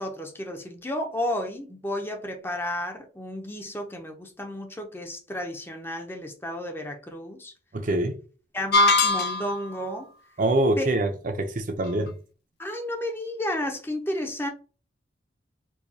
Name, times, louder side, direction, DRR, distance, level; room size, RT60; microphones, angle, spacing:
voice 1, 0.0-7.5 8.5-10.1 10.8-10.9 12.6-14.5, left 1 dB, 15° left, 0.5 m, -32 dB
voice 2, 7.7-8.1 10.4-11.1 11.3-12.2, right 1 dB, 45° right, 0.5 m, -24 dB
sound 1, 8.7-9.7, left 2 dB, 60° left, 0.5 m, -21 dB
4.6 x 2.2 x 2.7 m
head